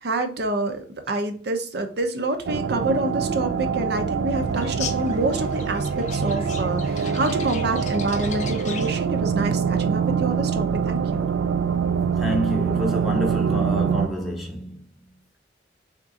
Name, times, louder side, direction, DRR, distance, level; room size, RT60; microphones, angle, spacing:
voice 1, 0.0-11.3, right 2 dB, 60° right, 0.7 m, -27 dB
sound 1, 2.5-14.1, right 6 dB, 85° right, 0.3 m, -24 dB
sound 2, 4.6-9.0, left 7 dB, 40° left, 0.5 m, -38 dB
voice 2, 12.2-14.8, equal, ahead, 0.8 m, -28 dB
3.6 x 3.6 x 2.8 m
head